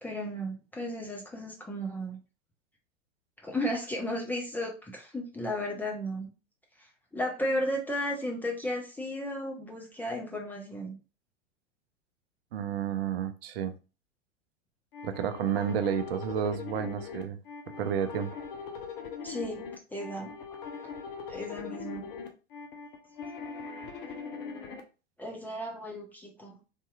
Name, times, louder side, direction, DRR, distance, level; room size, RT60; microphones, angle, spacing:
voice 1, 0.0-2.2 3.4-6.3 6.8-11.0 19.2-19.6 19.9-20.3 21.3-22.1 25.2-26.6, equal, 5° left, 0.4 m, -34 dB
voice 2, 12.5-13.7 15.0-17.4 17.8-18.3, right 8 dB, 55° right, 0.5 m, -31 dB
sound 1, 14.9-24.8, left 5 dB, 50° left, 0.7 m, -41 dB
3.5 x 2.7 x 2.3 m
figure-of-eight pair, 90°, 36 cm